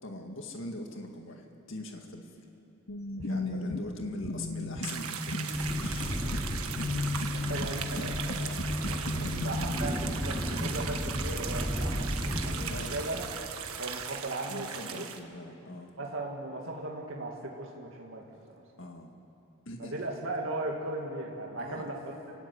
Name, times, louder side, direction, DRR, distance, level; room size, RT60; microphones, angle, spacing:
voice 1, 0.0-2.5 3.2-6.9 8.4-8.6 9.1-9.5 10.0-10.2 12.7-13.0 14.5-15.9 18.8-19.1 19.7-20.1 21.6-21.9, left 1 dB, 60° left, 3 dB, 2.0 m, -42 dB
sound 1, 2.9-9.7, left 2 dB, 85° left, 1.9 m, -35 dB
voice 2, 3.1-3.6 7.3-8.7 9.3-13.2 13.8-15.1 16.0-18.6 19.8-22.0, right 2 dB, 60° right, -1 dB, 2.3 m, -38 dB
sound 2, 4.8-15.2, right 7 dB, 90° right, 1.6 m, -38 dB
sound 3, 5.5-12.7, equal, 5° left, 3.4 m, -34 dB
29.5 x 17.0 x 9.8 m, 2.9 s
head